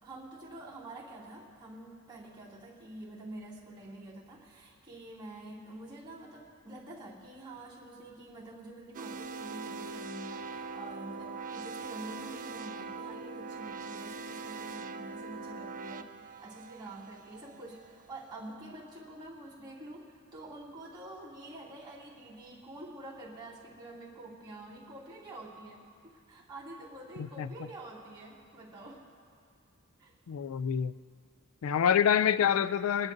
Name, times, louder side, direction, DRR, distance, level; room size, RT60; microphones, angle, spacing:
voice 1, 0.0-29.1 30.0-30.1, right 1 dB, 20° right, 2.5 m, -47 dB
sound 1, 8.9-17.9, right 4 dB, 40° right, 0.4 m, -42 dB
voice 2, 27.2-27.5 30.3-30.9 31.6-33.1, left 8 dB, 70° left, 0.4 m, -27 dB
26.5 x 11.0 x 2.6 m
head